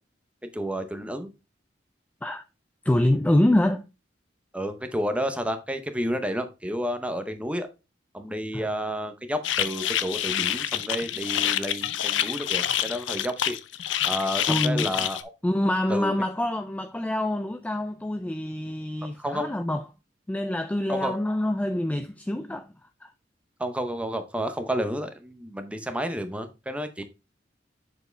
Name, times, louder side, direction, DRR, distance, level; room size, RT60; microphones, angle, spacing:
voice 1, 0.5-1.3 4.5-7.7 8.1-13.6 14.0-15.3 15.9-16.1 19.2-19.5 20.9-21.2 23.6-27.0, equal, 5° right, 0.8 m, -30 dB
voice 2, 2.8-3.8 8.5-8.7 14.5-14.9 15.4-19.9 20.3-22.7 23.0-23.1, left 1 dB, 10° left, 0.3 m, -25 dB
sound 1, 9.4-15.2, left 11 dB, 85° left, 0.5 m, -27 dB
6.8 x 4.7 x 3.3 m
head